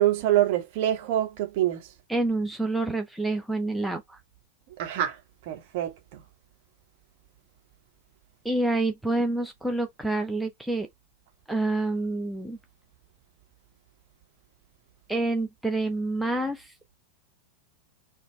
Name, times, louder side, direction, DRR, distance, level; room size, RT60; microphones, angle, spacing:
voice 1, 0.0-1.8 4.8-5.2 5.5-6.2, right 12 dB, 50° right, 1.1 m, -25 dB
voice 2, 2.1-4.2 8.4-10.9 11.5-12.6 15.1-16.7, right 2 dB, ahead, 0.6 m, -27 dB
4.1 x 2.3 x 3.1 m
figure-of-eight pair, 90°, 0 cm